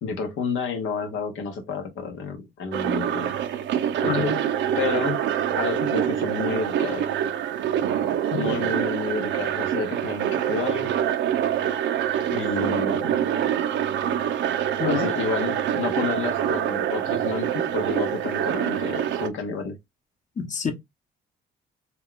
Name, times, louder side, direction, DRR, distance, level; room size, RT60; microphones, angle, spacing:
voice 1, 0.0-3.3 4.0-4.3 4.8-5.2 5.5-7.0 8.3-10.9 12.3-13.1 14.8-19.8, left 4 dB, 80° left, 0.7 m, -30 dB
sound 1, 2.7-19.3, right 10 dB, 70° right, 0.5 m, -25 dB
voice 2, 4.1-4.4 8.3-8.6 14.8-15.1 20.4-20.7, left 7 dB, 40° left, 0.8 m, -27 dB
2.3 x 2.2 x 3.6 m
cardioid pair, 90°, 20 cm